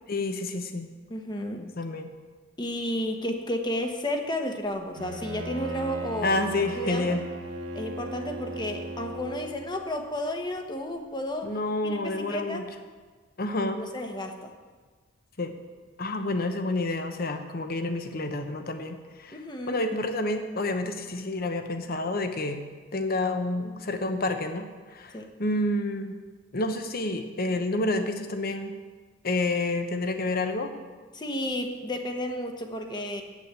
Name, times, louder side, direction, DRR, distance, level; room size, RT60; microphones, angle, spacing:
voice 1, 0.1-0.9 1.6-2.1 6.2-7.2 11.4-12.7 13.4-13.9 15.4-15.5 16.0-19.4 19.7-22.6 22.9-26.2 26.5-28.7 29.2-30.7, left 2 dB, 50° left, 7 dB, 1.0 m, -29 dB
voice 2, 1.1-1.7 2.6-7.2 7.7-11.5 11.8-12.6 13.8-14.5 19.3-19.8 25.1-25.3 31.1-33.2, left 1 dB, 25° left, 4 dB, 1.0 m, -32 dB
Bowed string instrument, 5.0-9.8, right 2 dB, 85° right, 1.3 m, -37 dB
8.4 x 8.0 x 8.1 m, 1.4 s
head